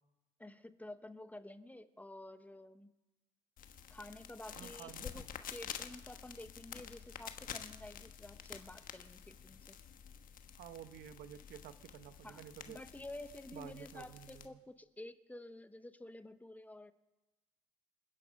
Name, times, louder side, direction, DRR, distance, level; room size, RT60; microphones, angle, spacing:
voice 1, 0.4-2.9 3.9-9.8 12.2-16.9, left 1 dB, 10° left, 11 dB, 0.8 m, -51 dB
sound 1, 3.6-14.5, left 8 dB, 55° left, 1.2 m, -50 dB
voice 2, 4.5-5.1 10.6-12.8 13.5-14.5, right 10 dB, 75° right, 12 dB, 1.0 m, -51 dB
27.5 x 9.8 x 5.2 m, 1.0 s
cardioid pair, 110°, 17 cm